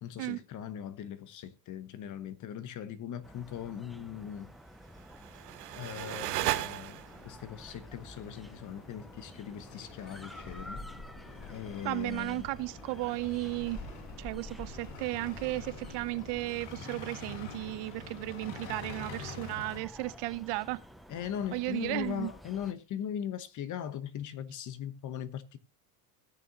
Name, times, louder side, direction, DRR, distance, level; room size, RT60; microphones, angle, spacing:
voice 1, 0.0-4.5 5.7-10.8 11.5-12.5 21.1-25.6, left 9 dB, 40° left, 1.1 m, -39 dB
sound 1, 3.2-22.7, equal, ahead, 0.5 m, -49 dB
sound 2, 5.0-7.3, right 16 dB, 90° right, 1.2 m, -35 dB
sound 3, 5.3-19.8, left 4 dB, 65° left, 2.4 m, -48 dB
voice 2, 11.8-13.8 14.2-20.8 21.5-22.3, right 20 dB, 55° right, 0.8 m, -35 dB
16.5 x 6.9 x 2.9 m
supercardioid pair, 120°, 48 cm